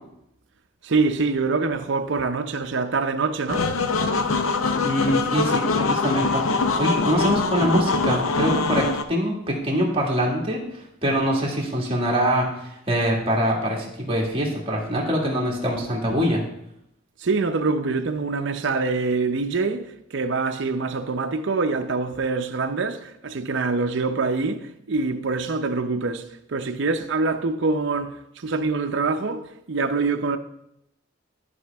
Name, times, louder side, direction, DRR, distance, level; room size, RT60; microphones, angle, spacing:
voice 1, 0.8-3.7 17.2-30.4, right 4 dB, 60° right, 0.6 m, -25 dB
sound 1, 3.5-9.0, left 4 dB, 85° left, 0.6 m, -23 dB
voice 2, 4.8-6.4 6.8-10.6 11.0-16.4, equal, 25° right, 1.8 m, -24 dB
12.5 x 5.0 x 3.5 m
head